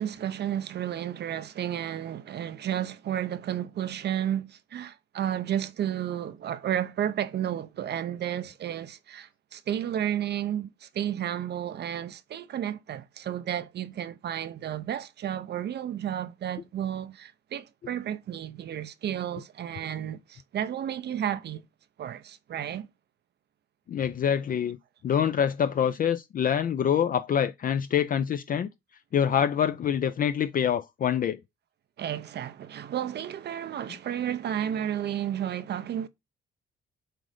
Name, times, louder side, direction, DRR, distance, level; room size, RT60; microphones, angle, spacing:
voice 1, 0.0-21.6 22.0-22.9 32.0-36.1, right 10 dB, 60° right, 0.6 m, -32 dB
voice 2, 23.9-24.8 25.0-28.7 29.1-31.4, left 8 dB, 45° left, 0.4 m, -25 dB
7.5 x 2.6 x 4.9 m
cardioid pair, 90°, 20 cm